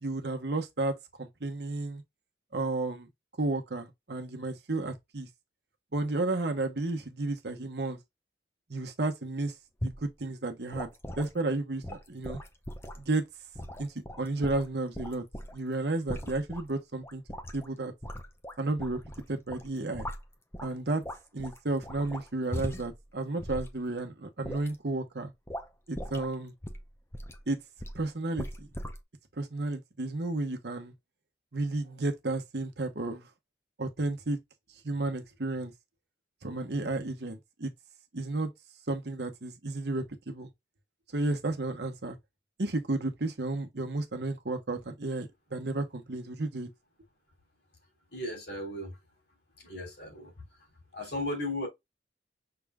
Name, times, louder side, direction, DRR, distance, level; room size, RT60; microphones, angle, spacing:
voice 1, 0.0-2.0 2.5-3.1 3.4-5.3 5.9-8.0 8.7-9.5 9.8-10.9 11.2-12.4 13.0-13.2 13.8-13.9 14.2-15.2 15.5-17.2 17.5-17.9 18.6-19.0 19.3-20.1 20.6-21.0 21.3-25.3 25.9-26.5 27.5-27.6 27.9-28.7 29.4-30.9 31.5-33.3 33.8-34.4 34.8-35.7 36.4-37.7 38.1-38.5 38.9-40.5 41.1-42.2 42.6-46.7, right 2 dB, 65° right, 1.1 m, -32 dB
sound 1, 9.8-10.1 10.7-11.3 11.8-13.1 13.5-15.6 16.1-16.7 17.0-17.7 18.0-19.2 19.5-20.7 21.0-23.0 23.4-23.7 24.4-24.8 25.5-25.7 25.9-26.4 26.6-27.4 27.8-28.0 28.4-29.0, equal, 15° left, 0.7 m, -39 dB
voice 2, 48.1-48.9 49.6-50.3 50.9-51.7, left 1 dB, 65° left, 2.8 m, -35 dB
5.9 x 3.5 x 2.3 m
head